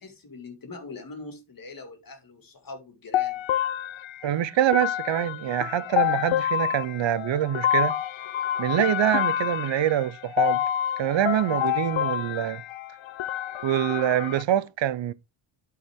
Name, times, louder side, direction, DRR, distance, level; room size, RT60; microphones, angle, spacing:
voice 1, 0.0-3.4, left 3 dB, 45° left, 2.3 m, -42 dB
sound 1, 3.1-14.4, left 11 dB, 75° left, 0.6 m, -28 dB
voice 2, 4.2-7.9 8.6-10.6 11.0-12.6 13.6-15.1, right 11 dB, 70° right, 0.7 m, -25 dB
12.0 x 4.6 x 3.6 m
wide cardioid pair, 160°, 46 cm